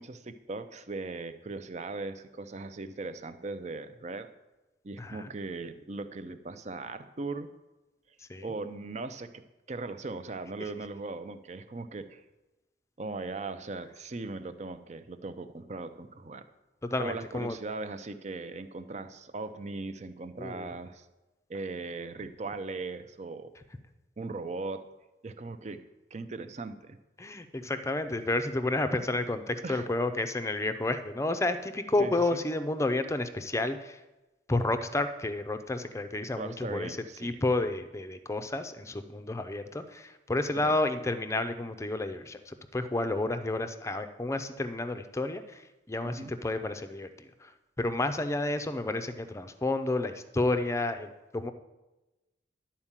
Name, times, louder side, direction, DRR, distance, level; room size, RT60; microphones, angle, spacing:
voice 1, 0.0-4.3 4.8-7.5 8.4-9.4 9.7-12.2 13.0-16.5 17.0-21.1 21.5-23.5 24.2-24.9 25.2-25.8 26.1-27.0 29.6-29.9 32.0-32.1 36.4-37.4 40.5-40.7 46.0-46.3, right 3 dB, 40° right, 10 dB, 0.6 m, -39 dB
voice 2, 5.0-5.3 8.3-8.4 16.8-17.6 20.4-20.7 27.2-34.0 34.5-45.6 45.9-47.5 47.8-51.5, left 2 dB, 15° left, 9 dB, 0.5 m, -31 dB
11.0 x 4.5 x 7.3 m, 1.0 s
head